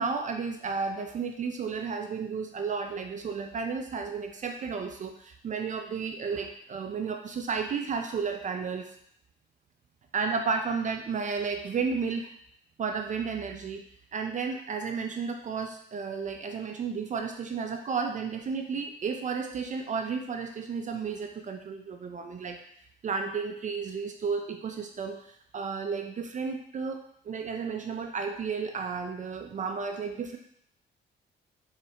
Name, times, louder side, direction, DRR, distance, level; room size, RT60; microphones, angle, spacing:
voice 1, 0.0-9.0 10.1-12.3 12.8-13.8 14.1-22.6 23.0-30.4, right 5 dB, 40° right, 4 dB, 0.4 m, -32 dB
4.0 x 3.2 x 2.8 m, 0.68 s
cardioid pair, 90°, 20 cm